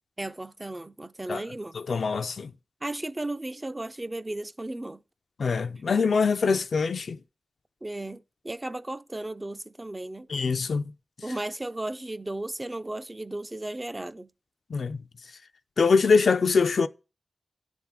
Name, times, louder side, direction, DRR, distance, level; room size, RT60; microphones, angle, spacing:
voice 1, 0.2-1.7 2.8-5.0 7.8-10.3 11.2-14.3, right 2 dB, 20° right, 0.4 m, -35 dB
voice 2, 1.7-2.5 5.4-7.2 10.3-10.8 14.7-15.0 15.8-16.9, left 5 dB, 70° left, 0.4 m, -23 dB
10.0 x 3.6 x 7.2 m
wide cardioid pair, 100°, 0 cm